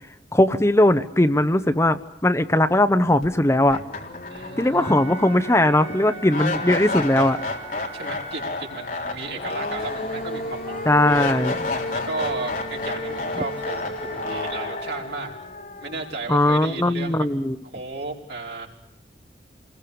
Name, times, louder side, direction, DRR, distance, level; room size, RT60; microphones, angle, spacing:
voice 1, 0.3-3.8 4.6-7.4 10.9-11.5 16.3-17.6, left 1 dB, 15° left, 10 dB, 0.8 m, -19 dB
sound 1, 3.2-3.3 3.7-16.8, left 2 dB, 50° left, 3.7 m, -31 dB
voice 2, 4.3-5.0 7.9-11.2 11.9-15.3 15.8-17.3 17.7-18.7, right 3 dB, 70° right, -1 dB, 5.2 m, -34 dB
Wind instrument woodwind instrument, 4.8-9.1, right 2 dB, 35° right, 7.7 m, -39 dB
sound 2, 9.4-14.4, equal, 5° right, 4.5 m, -45 dB
28.5 x 21.0 x 6.9 m, 0.80 s
head